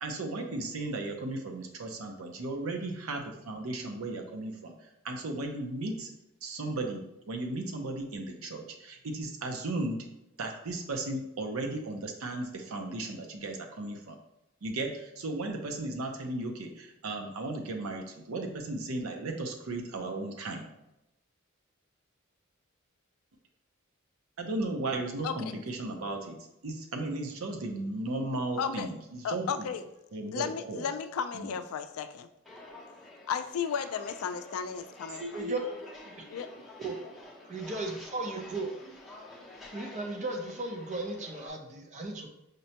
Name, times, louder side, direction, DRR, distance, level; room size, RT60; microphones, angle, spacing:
voice 1, 0.0-6.1 6.4-10.0 10.4-14.2 14.6-20.7 24.4-26.4 26.6-29.7 30.1-30.9 31.3-31.6, right 2 dB, 85° right, 3 dB, 0.6 m, -35 dB
voice 2, 25.2-25.6 28.6-28.9 29.2-29.9 30.3-32.3 33.3-35.4 36.3-36.5, left 7 dB, 85° left, 10 dB, 0.3 m, -34 dB
Walk footsteps, 32.4-41.5, left 1 dB, ahead, 0.7 m, -49 dB
voice 3, 35.2-35.6 36.0-36.2 36.8-37.0 37.5-38.7 39.7-42.3, right 2 dB, 35° right, 2 dB, 0.5 m, -35 dB
5.0 x 2.1 x 2.8 m, 0.90 s
head